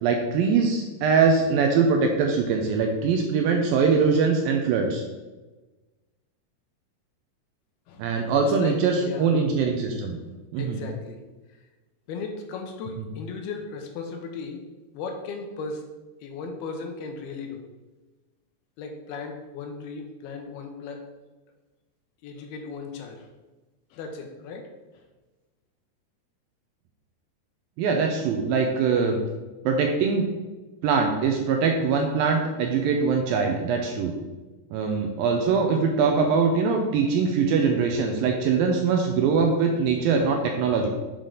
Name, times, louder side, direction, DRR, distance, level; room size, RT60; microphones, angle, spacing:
voice 1, 0.0-5.0 8.0-10.2 10.5-10.8 27.8-29.2 29.7-30.3 30.8-34.1 34.7-40.9, right 5 dB, 85° right, 3 dB, 2.1 m, -22 dB
voice 2, 7.9-9.3 10.6-11.2 12.1-14.6 14.9-15.9 16.2-17.6 18.8-21.0 22.2-23.3 23.9-24.7 24.9-25.0, left 4 dB, 80° left, 3 dB, 2.7 m, -36 dB
7.3 x 5.1 x 3.8 m, 1.2 s
omnidirectional pair, 4.6 m